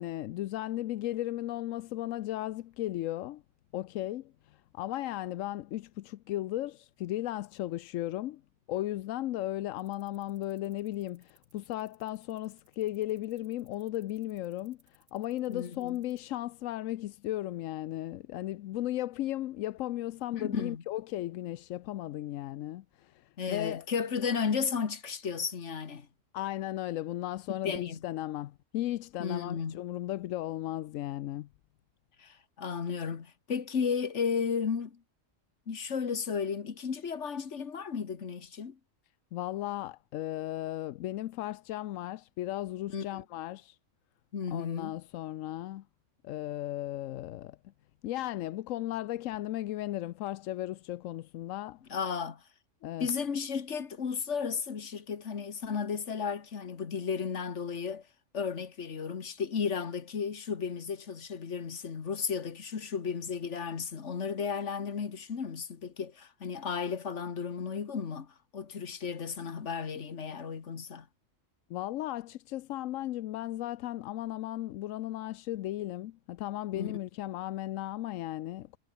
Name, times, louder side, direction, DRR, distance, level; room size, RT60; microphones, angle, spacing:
voice 1, 0.0-3.4 3.7-8.4 8.7-23.9 26.3-31.5 39.3-43.8 44.5-45.8 46.2-47.6 48.0-51.8 52.8-53.1 71.7-78.8, left 14 dB, 90° left, 1.0 m, -36 dB
Fast Ticking, 9.8-16.2, right 2 dB, 75° right, 6.5 m, -66 dB
voice 2, 15.5-16.0 20.3-20.8 23.4-26.1 27.5-28.0 29.2-29.8 32.2-35.0 35.7-38.8 42.9-43.2 44.3-44.9 51.9-52.4 53.0-58.0 58.3-71.1 76.7-76.9, left 6 dB, 65° left, 1.8 m, -34 dB
omnidirectional pair, 1.3 m